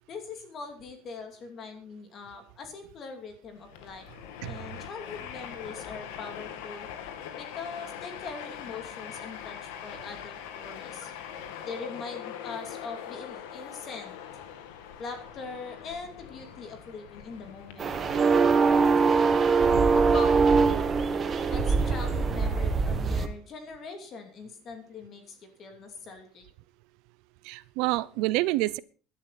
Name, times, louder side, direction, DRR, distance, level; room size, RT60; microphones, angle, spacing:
voice 1, 0.1-4.0 4.5-6.9 7.4-11.1 11.6-14.2 15.0-18.0 19.9-20.7 21.5-26.4, left 4 dB, 35° left, 5 dB, 2.7 m, -41 dB
Train, 3.5-21.1, left 9 dB, 90° left, 2.0 m, -43 dB
sound 1, 17.8-23.3, right 5 dB, 25° right, 1.4 m, -22 dB
voice 2, 27.4-28.8, right 19 dB, 65° right, 19 dB, 0.6 m, -27 dB
16.0 x 11.5 x 4.1 m, 0.38 s
cardioid pair, 155°, 0 cm